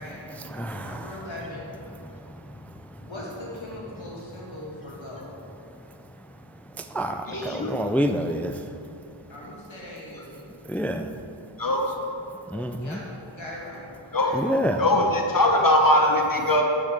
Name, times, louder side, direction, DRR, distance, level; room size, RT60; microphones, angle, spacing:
voice 1, 0.0-1.7 3.0-5.3 9.3-10.5 12.8-14.4, left 1 dB, 65° left, -5 dB, 2.3 m, -40 dB
voice 2, 0.5-1.1 6.8-8.6 10.7-11.1 12.5-13.0 14.3-14.8, equal, 5° left, 7 dB, 0.3 m, -27 dB
voice 3, 7.3-7.7 11.6-11.9 14.1-14.4 14.8-16.6, left 1 dB, 40° left, 1 dB, 1.2 m, -21 dB
6.8 x 6.4 x 6.7 m, 2.5 s
wide cardioid pair, 50°, 49 cm